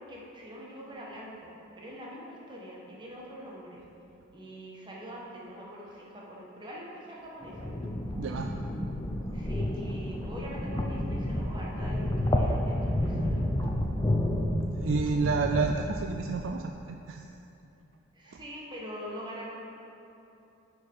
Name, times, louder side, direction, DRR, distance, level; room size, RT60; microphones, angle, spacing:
voice 1, 0.0-3.8 4.3-7.7 9.3-13.4 18.1-19.6, equal, 25° right, -4 dB, 1.4 m, -43 dB
sound 1, 7.4-16.6, left 1 dB, 20° left, 0.6 m, -30 dB
voice 2, 8.2-8.5 14.7-17.3 18.3-18.4, right 4 dB, 65° right, 3 dB, 0.4 m, -30 dB
11.0 x 4.6 x 4.7 m, 2.8 s
head